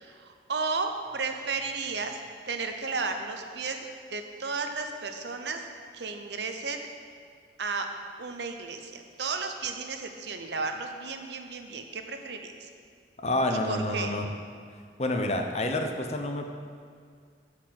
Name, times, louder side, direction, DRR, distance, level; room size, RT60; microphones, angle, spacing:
voice 1, 0.0-2.2 2.5-5.6 5.9-6.9 7.6-7.9 8.2-12.7 13.5-14.1, right 4 dB, 75° right, 5 dB, 0.8 m, -34 dB
voice 2, 13.2-14.3 15.0-16.4, left 1 dB, 35° left, 4 dB, 0.7 m, -28 dB
9.0 x 4.9 x 7.5 m, 2.1 s
head